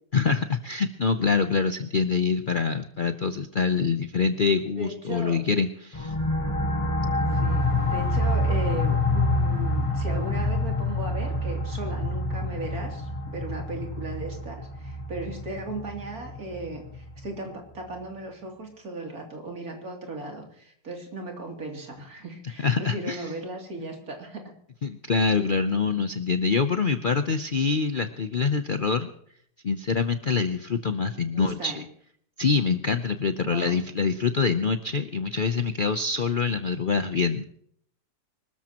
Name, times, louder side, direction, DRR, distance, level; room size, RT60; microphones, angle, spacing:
voice 1, 0.1-6.1 22.6-23.3 24.8-29.1 29.6-31.8 32.4-37.4, left 5 dB, 50° left, 9 dB, 0.6 m, -25 dB
voice 2, 4.8-5.4 7.3-24.4 31.3-31.9 33.4-33.8, right 2 dB, 65° right, 2 dB, 3.4 m, -37 dB
sound 1, 5.9-17.3, left 2 dB, 20° left, 1.3 m, -27 dB
25.0 x 13.5 x 3.0 m, 0.65 s
omnidirectional pair, 1.7 m